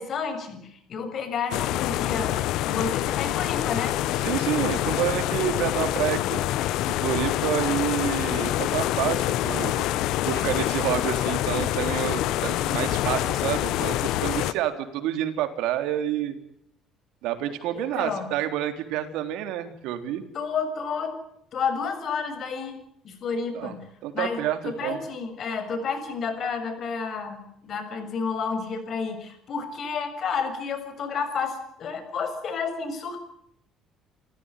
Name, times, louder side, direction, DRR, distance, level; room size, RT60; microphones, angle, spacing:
voice 1, 0.0-2.4 2.7-4.0 17.7-18.2 20.3-21.1 21.5-22.8 23.0-23.8 24.1-33.2, left 5 dB, 45° left, 8 dB, 6.9 m, -30 dB
sound 1, 1.5-14.5, left 14 dB, 75° left, 1.0 m, -26 dB
voice 2, 4.2-6.4 6.9-9.8 10.3-16.3 17.2-20.2 23.5-23.7 24.0-25.0, right 11 dB, 85° right, 8 dB, 3.6 m, -28 dB
29.0 x 15.5 x 9.2 m, 0.75 s
cardioid pair, 135°, 0 cm